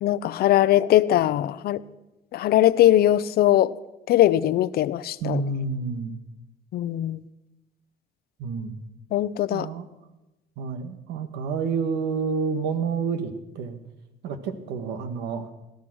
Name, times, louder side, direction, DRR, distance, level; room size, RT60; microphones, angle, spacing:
voice 1, 0.0-1.8 2.3-3.7 4.1-5.4 6.7-7.2 9.1-9.7, left 13 dB, 65° left, 17 dB, 0.7 m, -20 dB
voice 2, 5.2-6.1 8.4-8.8 9.5-9.9 10.6-13.8 14.2-15.5, right 5 dB, 90° right, 9 dB, 1.7 m, -29 dB
17.0 x 12.5 x 6.3 m, 0.97 s
cardioid pair, 110°, 17 cm